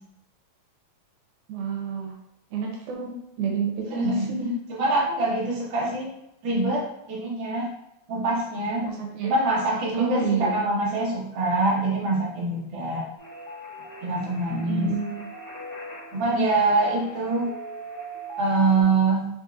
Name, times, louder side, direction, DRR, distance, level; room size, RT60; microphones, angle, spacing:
voice 1, 1.5-2.1 2.5-3.1 3.4-4.5 8.8-9.3 9.9-10.6 14.5-15.3, right 4 dB, 85° right, 0 dB, 2.1 m, -29 dB
voice 2, 3.9-4.3 4.7-6.1 6.4-7.7 8.1-8.8 9.2-13.0 14.0-14.9 16.1-17.5 18.4-19.3, right 2 dB, 55° right, -6 dB, 1.6 m, -24 dB
sound 1, 13.2-18.8, right 3 dB, 50° left, 1.3 m, -39 dB
4.9 x 2.7 x 2.4 m, 0.81 s
omnidirectional pair, 3.5 m